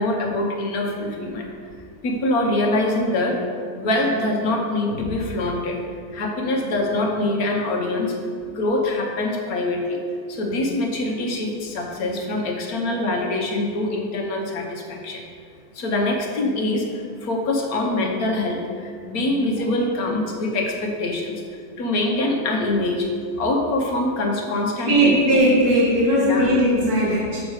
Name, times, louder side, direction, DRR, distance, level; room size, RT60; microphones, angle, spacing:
voice 1, 0.0-1.5 2.0-3.4 3.7-5.8 6.1-8.2 8.5-15.2 15.7-21.4 21.8-23.1 23.4-25.2 26.2-26.5, left 2 dB, 65° left, 1 dB, 1.5 m, -24 dB
voice 2, 24.8-27.4, right 1 dB, 65° right, -6 dB, 2.3 m, -18 dB
6.7 x 6.5 x 4.8 m, 2.2 s
omnidirectional pair, 1.7 m